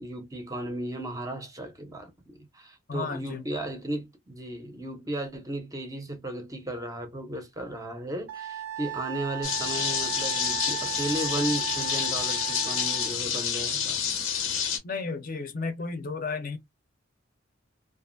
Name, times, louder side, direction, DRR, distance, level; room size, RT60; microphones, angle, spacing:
voice 1, 0.0-14.0, right 1 dB, 15° right, 0.5 m, -35 dB
voice 2, 2.9-3.4 14.8-16.6, left 4 dB, 45° left, 0.5 m, -33 dB
Wind instrument woodwind instrument, 8.3-13.1, right 11 dB, 75° right, 0.5 m, -36 dB
sound 1, 9.4-14.8, left 8 dB, 90° left, 0.8 m, -28 dB
2.6 x 2.4 x 2.4 m
head